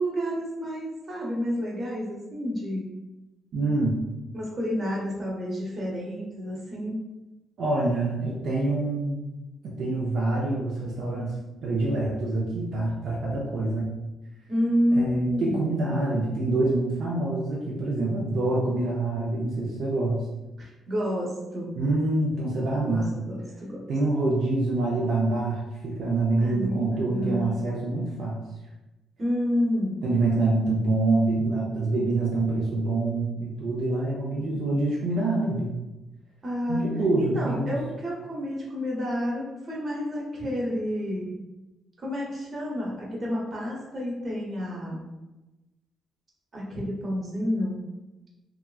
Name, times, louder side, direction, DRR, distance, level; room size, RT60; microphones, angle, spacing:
voice 1, 0.0-2.9 4.3-7.0 14.5-15.7 20.6-21.7 22.8-23.8 26.4-27.6 29.2-30.0 36.4-36.8 37.2-41.4 42.0-45.0 46.5-47.8, equal, 40° right, -3 dB, 1.0 m, -29 dB
voice 2, 3.5-4.0 7.6-9.3 9.6-11.4 11.6-13.9 14.9-20.2 21.7-23.1 23.9-28.4 30.0-35.8 36.7-37.8, right 2 dB, 65° right, -4 dB, 0.5 m, -26 dB
2.8 x 2.3 x 2.3 m, 1.0 s
cardioid pair, 90°, 0 cm